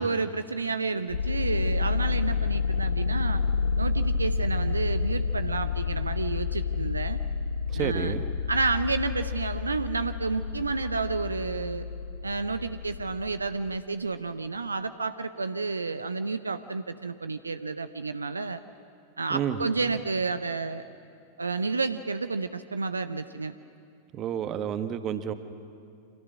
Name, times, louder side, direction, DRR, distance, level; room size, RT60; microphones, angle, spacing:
voice 1, 0.0-3.4 3.8-7.2 7.7-8.1 8.5-11.9 12.2-18.6 19.2-20.9 21.4-23.5, right 4 dB, 80° right, 11 dB, 0.7 m, -30 dB
sound 1, 1.1-13.8, left 5 dB, 70° left, 0.7 m, -29 dB
voice 2, 7.7-8.2 19.3-19.6 24.1-25.3, right 9 dB, 35° right, 9 dB, 1.4 m, -30 dB
29.0 x 26.0 x 6.3 m, 2.5 s
figure-of-eight pair, 90°, 0 cm